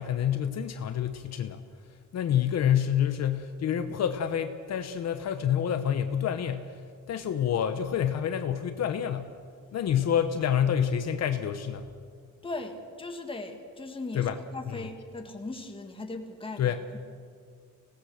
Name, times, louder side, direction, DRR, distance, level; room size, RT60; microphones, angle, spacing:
voice 1, 0.0-1.6 2.1-6.7 7.1-9.3 9.7-11.8 14.1-14.3 14.7-14.8 16.6-16.8, left 9 dB, 60° left, 8 dB, 1.0 m, -27 dB
voice 2, 12.4-17.0, left 2 dB, 15° left, 4 dB, 1.8 m, -39 dB
25.5 x 18.0 x 6.4 m, 2.1 s
wide cardioid pair, 175°, 30 cm